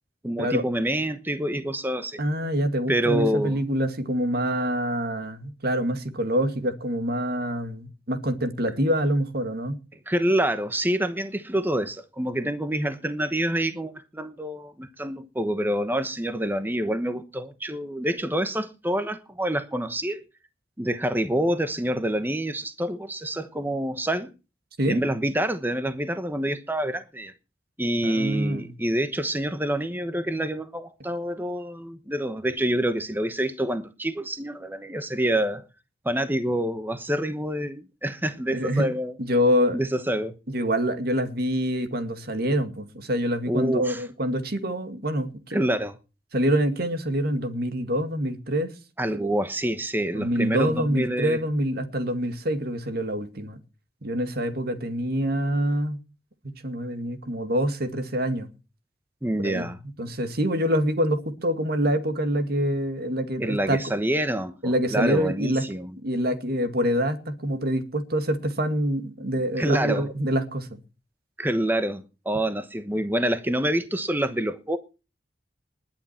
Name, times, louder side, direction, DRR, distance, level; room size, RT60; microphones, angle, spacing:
voice 1, 0.2-2.2 2.9-3.6 10.1-20.2 20.8-24.3 24.9-27.3 27.8-35.6 36.0-39.1 39.7-40.3 43.5-44.0 45.5-46.0 49.0-51.4 59.2-59.8 63.4-65.9 69.6-70.1 71.4-74.8, right 1 dB, 10° right, 1.1 m, -27 dB
voice 2, 2.2-9.8 24.8-25.0 28.0-28.7 38.5-38.9 39.2-39.8 40.5-45.7 46.3-48.7 49.1-49.3 50.1-53.6 54.0-56.0 56.6-58.5 59.4-59.7 60.0-63.8 64.6-65.7 66.0-70.8, equal, 60° right, 2.1 m, -26 dB
20.5 x 10.0 x 4.4 m
head